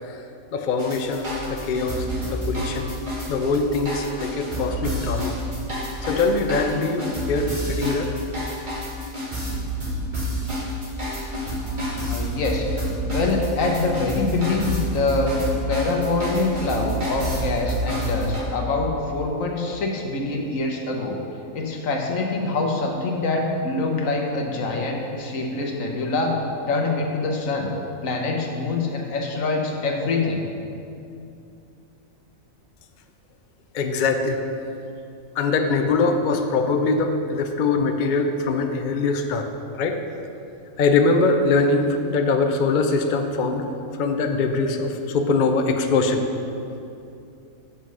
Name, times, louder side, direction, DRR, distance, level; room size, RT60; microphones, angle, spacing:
voice 1, 0.5-2.9 3.3-5.4 6.0-8.1 33.7-34.4 35.4-39.5 39.7-40.0 40.8-43.7 44.0-46.2, left 3 dB, 55° left, 5 dB, 0.6 m, -22 dB
sound 1, 0.8-18.4, equal, 35° right, 2.1 m, -28 dB
voice 2, 11.4-12.6 13.1-15.3 15.7-21.2 21.5-26.3 26.7-27.7 28.0-30.5, left 3 dB, 70° left, 1 dB, 1.4 m, -25 dB
7.6 x 5.7 x 6.2 m, 2.6 s
omnidirectional pair, 1.4 m